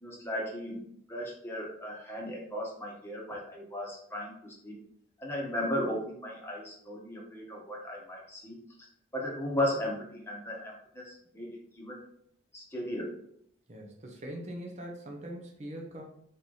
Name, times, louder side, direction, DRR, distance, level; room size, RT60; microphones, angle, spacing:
voice 1, 0.0-4.8 5.2-8.6 9.1-12.0 12.5-13.2, left 1 dB, 10° left, -2 dB, 1.0 m, -36 dB
voice 2, 13.7-16.0, right 1 dB, 35° right, 0 dB, 0.7 m, -42 dB
4.2 x 3.3 x 3.8 m, 0.68 s
head